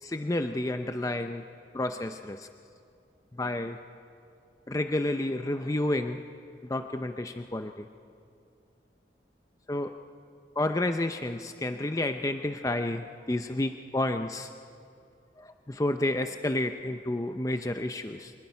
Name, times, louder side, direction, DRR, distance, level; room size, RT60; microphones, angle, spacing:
voice 1, 0.0-1.4 1.7-2.5 3.3-3.8 4.7-6.2 6.6-7.9 9.7-9.9 10.6-14.5 15.4-18.3, left 1 dB, 20° left, 7 dB, 0.5 m, -30 dB
25.0 x 20.5 x 5.7 m, 2.5 s
head